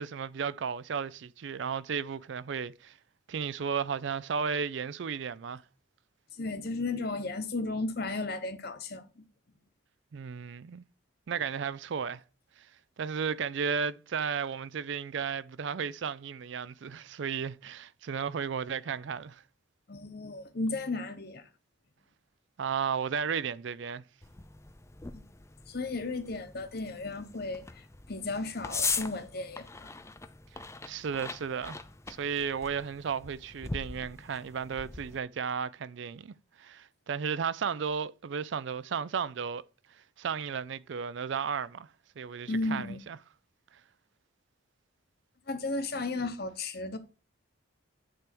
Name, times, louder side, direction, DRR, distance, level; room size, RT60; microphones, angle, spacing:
voice 1, 0.0-3.0 3.3-5.6 10.1-10.8 11.3-12.2 12.6-12.7 13.0-19.4 22.6-24.0 30.5-31.8 32.1-39.6 40.2-41.9 42.2-43.2, right 6 dB, 60° right, 0.4 m, -34 dB
voice 2, 6.4-9.2 19.9-21.4 25.1-25.2 25.7-29.9 42.5-43.0 45.5-47.0, left 3 dB, 50° left, 1.0 m, -34 dB
sound 1, 24.2-35.2, left 4 dB, 15° left, 0.5 m, -40 dB
10.0 x 3.4 x 5.9 m
head